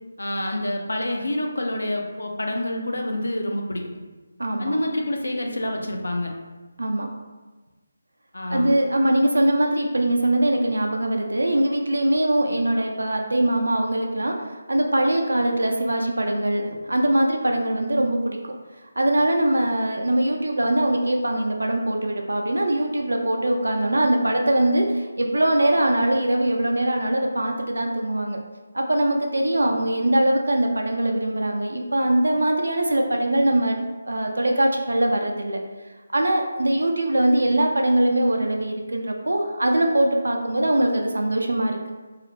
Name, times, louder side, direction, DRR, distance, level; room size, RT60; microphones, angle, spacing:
voice 1, 0.2-3.8 4.6-6.3 8.3-8.7, left 1 dB, 85° left, 2 dB, 0.4 m, -27 dB
voice 2, 4.4-4.8 6.8-7.1 8.5-18.4 19.0-28.4 28.7-33.8 34.1-35.6 36.1-41.8, right 1 dB, 85° right, 2 dB, 0.3 m, -22 dB
2.3 x 2.0 x 3.0 m, 1.3 s
figure-of-eight pair, 155°, 0 cm